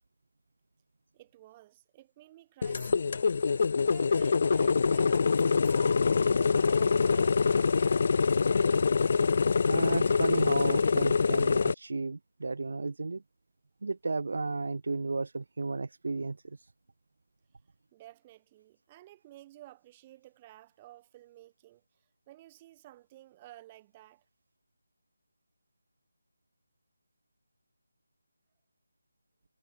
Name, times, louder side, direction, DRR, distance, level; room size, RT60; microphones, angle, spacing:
voice 1, 1.1-3.4 3.8-8.3 17.9-21.8 22.3-24.2, right 15 dB, 20° right, 6.6 m, -54 dB
sound 1, 2.6-11.7, left 5 dB, 45° left, 0.4 m, -25 dB
voice 2, 9.7-13.2 13.8-16.4, right 3 dB, 60° right, 0.7 m, -33 dB
figure-of-eight pair, 160°, 0 cm